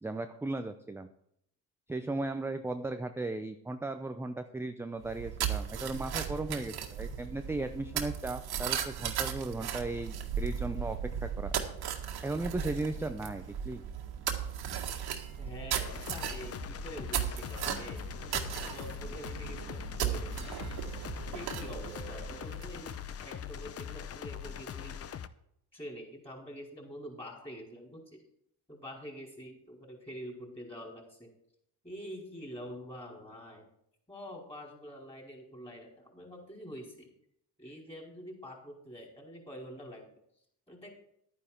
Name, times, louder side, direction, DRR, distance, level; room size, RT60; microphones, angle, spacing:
voice 1, 0.0-1.1 1.9-11.6 12.2-13.8, right 2 dB, 5° right, 7 dB, 0.5 m, -36 dB
sound 1, 5.0-23.0, right 9 dB, 55° right, 1.8 m, -37 dB
voice 2, 15.4-20.7 21.3-25.0 25.7-28.2 28.7-31.3 31.8-33.7 34.1-37.1 37.6-40.1 40.7-40.9, equal, 15° left, -1 dB, 4.7 m, -46 dB
sound 2, 15.8-25.3, left 8 dB, 35° left, 0.7 m, -42 dB
11.0 x 9.6 x 4.4 m, 0.72 s
supercardioid pair, 95°, 44 cm